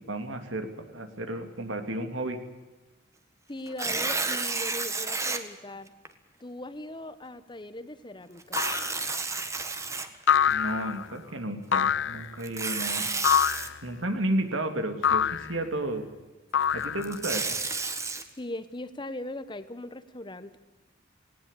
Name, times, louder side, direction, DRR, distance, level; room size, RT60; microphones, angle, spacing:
voice 1, 0.1-2.4 10.5-13.1 13.8-16.1 16.7-17.6, right 1 dB, 80° right, 7 dB, 3.0 m, -32 dB
voice 2, 3.5-5.9 6.4-8.6 18.4-20.6, left 1 dB, 25° left, 13 dB, 1.1 m, -39 dB
Tearing, 3.7-5.4 6.0-6.1 8.4-10.5 12.4-13.7 16.8-18.2, right 3 dB, 15° right, 1.4 m, -31 dB
sound 1, 8.6-9.0 10.3-11.1 11.7-12.3 13.2-13.8 15.0-15.5 16.5-17.3, left 8 dB, 75° left, 0.7 m, -25 dB
18.5 x 18.5 x 8.5 m, 1.1 s
head